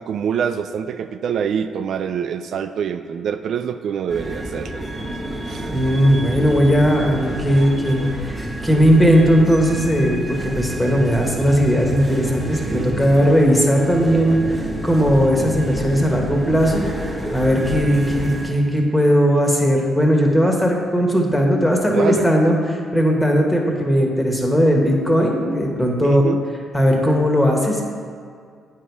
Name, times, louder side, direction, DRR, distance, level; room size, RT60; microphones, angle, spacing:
voice 1, 0.0-5.0 5.5-5.7 12.6-13.0 21.9-22.3 26.0-26.4, right 7 dB, 65° right, 9 dB, 0.3 m, -25 dB
sound 1, 4.1-18.5, right 1 dB, 10° right, 1.3 m, -29 dB
voice 2, 5.7-16.9 17.3-26.2 26.7-27.8, equal, 10° left, 0 dB, 1.5 m, -17 dB
8.6 x 5.5 x 4.7 m, 2.1 s
cardioid pair, 90°, 0 cm